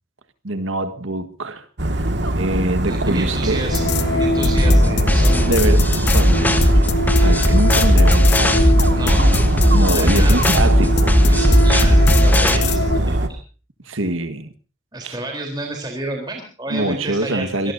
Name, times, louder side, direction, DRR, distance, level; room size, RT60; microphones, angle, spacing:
voice 1, 0.4-1.7 2.3-3.7 5.3-6.6 7.2-8.7 9.7-11.3 13.9-14.5 15.0-15.2 16.7-17.7, right 2 dB, 90° right, 1.6 m, -24 dB
Dog, 1.8-13.3, right 1 dB, 60° right, 2.0 m, -21 dB
voice 2, 2.8-3.8 4.1-5.5 8.9-9.3 9.9-10.4 11.3-13.4 14.9-17.7, right 2 dB, 20° right, 3.9 m, -30 dB
sound 1, 3.7-13.0, left 2 dB, 55° left, 1.5 m, -22 dB
sound 2, 4.6-12.6, equal, 10° left, 1.4 m, -16 dB
25.5 x 18.5 x 2.8 m
head